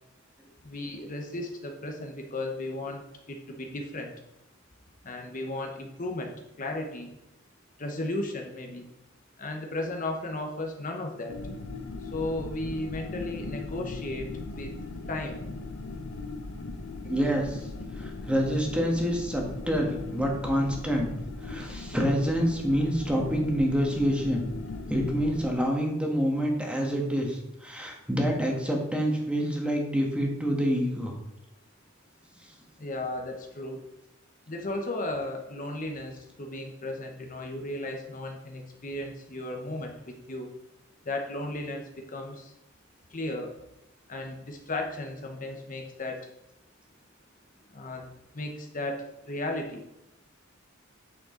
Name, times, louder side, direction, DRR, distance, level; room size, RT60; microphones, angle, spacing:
voice 1, 0.6-4.1 5.0-7.2 7.8-8.9 9.4-11.4 12.0-14.7 15.1-15.4 32.8-33.8 34.5-40.5 41.0-42.5 43.1-43.5 44.1-46.3 47.7-49.8, left 2 dB, 40° left, 3 dB, 1.0 m, -35 dB
sound 1, 11.3-25.5, left 3 dB, 65° left, 0.6 m, -39 dB
voice 2, 17.0-17.6 18.0-21.1 21.4-24.4 24.9-31.1, equal, 5° right, 0 dB, 1.6 m, -27 dB
8.6 x 6.7 x 3.9 m, 0.86 s
head